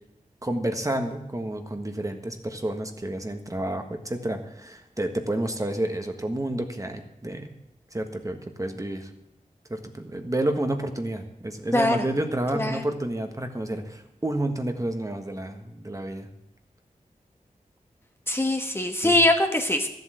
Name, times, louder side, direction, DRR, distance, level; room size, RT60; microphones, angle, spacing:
voice 1, 0.4-7.5 7.9-9.1 9.7-16.3 19.0-19.2, right 1 dB, 25° right, 5 dB, 1.4 m, -30 dB
voice 2, 18.3-19.9, left 1 dB, 15° left, 4 dB, 1.2 m, -22 dB
13.0 x 8.0 x 7.7 m, 0.85 s
wide cardioid pair, 60°, 14 cm